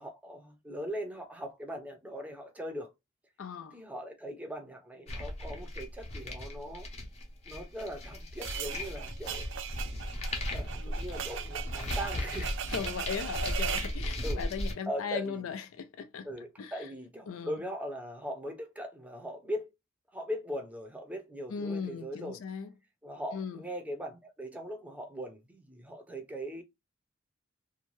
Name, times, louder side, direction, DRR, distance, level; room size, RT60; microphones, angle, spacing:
voice 1, 0.0-2.9 3.7-6.9 7.5-9.5 10.5-12.5 14.2-14.4 14.9-15.5 16.2-19.7 20.1-22.4 23.0-26.6, equal, 5° right, 0.6 m, -40 dB
voice 2, 3.4-3.8 10.8-10.9 12.7-16.3 16.6-16.9 17.3-17.6 21.5-22.7 23.3-23.6, left 6 dB, 80° left, 0.4 m, -38 dB
sound 1, 5.1-14.7, left 1 dB, 30° left, 0.7 m, -36 dB
sound 2, 8.4-14.0, right 9 dB, 65° right, 0.4 m, -39 dB
2.6 x 2.2 x 3.0 m
head